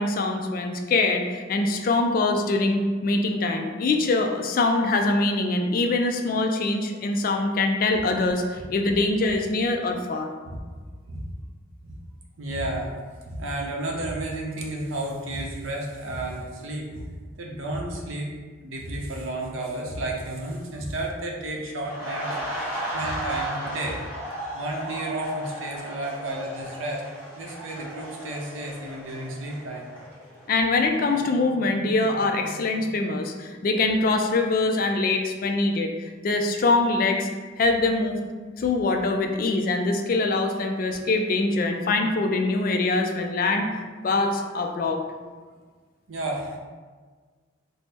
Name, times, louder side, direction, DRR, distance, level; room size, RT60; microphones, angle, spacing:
voice 1, 0.0-10.3 30.5-37.3 37.6-38.2 38.6-43.7 44.0-45.0, left 3 dB, 45° left, 4 dB, 0.3 m, -23 dB
voice 2, 12.4-12.9 13.2-17.1 17.4-18.3 18.6-22.3 22.6-24.0 24.5-27.0 27.4-29.8 46.1-46.6, right 1 dB, 85° right, -1 dB, 0.7 m, -32 dB
sound 1, 21.8-30.6 30.9-31.1, right 1 dB, 10° right, 1.0 m, -35 dB
4.2 x 2.0 x 3.3 m, 1.5 s
head